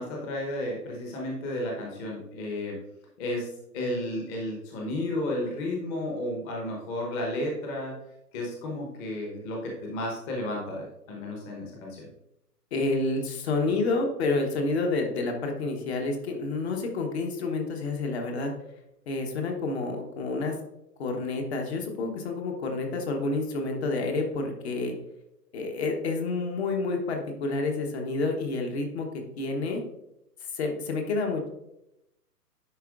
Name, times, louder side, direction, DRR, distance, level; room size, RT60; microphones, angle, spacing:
voice 1, 0.0-2.8 3.2-8.0 8.3-12.1, left 1 dB, 20° left, -1 dB, 0.9 m, -33 dB
voice 2, 12.7-18.5 19.1-20.6 21.0-24.9 25.5-29.1 29.4-29.8 30.5-31.5, left 3 dB, 40° left, 2 dB, 1.1 m, -29 dB
10.0 x 4.4 x 2.4 m, 0.84 s
figure-of-eight pair, 130°, 49 cm